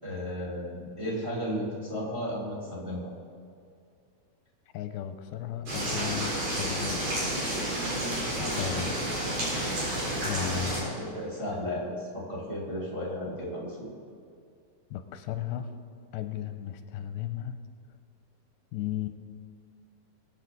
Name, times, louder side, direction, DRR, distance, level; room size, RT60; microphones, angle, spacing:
voice 1, 0.0-3.0 10.4-13.9, equal, 10° right, -5 dB, 3.0 m, -34 dB
voice 2, 4.7-7.2 8.4-9.0 10.3-10.8 14.9-15.7 16.1-17.6 18.7-19.1, left 10 dB, 90° left, 8 dB, 2.6 m, -35 dB
sound 1, 5.7-10.8, right 1 dB, 50° right, 5.4 m, -30 dB
22.0 x 8.7 x 4.0 m, 2.3 s
omnidirectional pair, 4.4 m